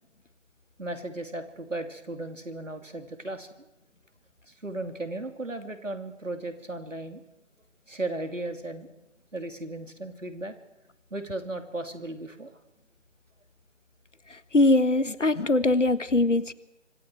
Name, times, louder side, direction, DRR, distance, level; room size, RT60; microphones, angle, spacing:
voice 1, 0.8-3.5 4.5-7.2 7.9-8.9 9.3-10.5 11.1-12.5, right 2 dB, 90° right, 7 dB, 2.9 m, -36 dB
voice 2, 14.5-16.5, left 2 dB, 75° left, 15 dB, 1.5 m, -21 dB
25.0 x 25.0 x 4.7 m, 0.92 s
figure-of-eight pair, 160°, 37 cm